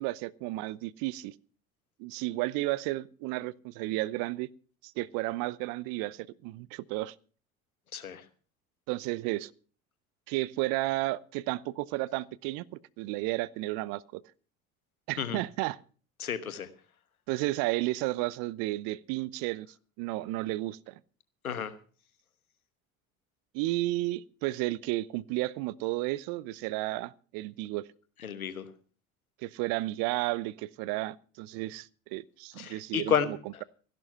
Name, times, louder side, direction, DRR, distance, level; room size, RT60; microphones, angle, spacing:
voice 1, 0.0-1.3 2.0-4.5 4.8-7.1 8.9-9.5 10.3-12.6 13.0-14.2 15.1-15.8 17.3-19.7 20.0-21.0 23.5-27.9 29.4-33.6, right 19 dB, 55° right, 0.8 m, -32 dB
voice 2, 7.9-8.2 15.2-15.4 16.2-16.7 21.4-21.7 28.2-28.7 32.6-33.6, left 7 dB, 85° left, 1.2 m, -31 dB
14.0 x 11.5 x 5.6 m
figure-of-eight pair, 65°, 42 cm